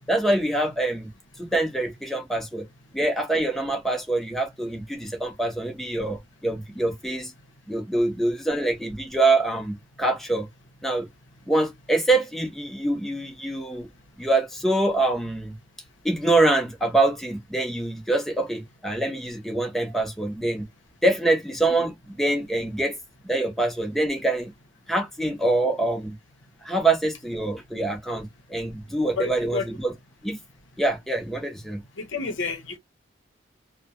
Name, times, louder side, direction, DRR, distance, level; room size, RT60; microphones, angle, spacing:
voice 1, 0.1-1.1 1.4-2.6 2.9-7.3 7.7-10.5 10.8-11.1 11.5-13.9 14.2-15.5 16.0-20.6 21.0-23.0 23.2-24.5 24.9-26.1 26.6-29.9 30.2-30.4 30.8-31.8, right 2 dB, ahead, 0.6 m, -25 dB
voice 2, 29.2-29.6 32.0-32.8, left 4 dB, 90° left, 0.7 m, -30 dB
2.7 x 2.1 x 2.9 m
head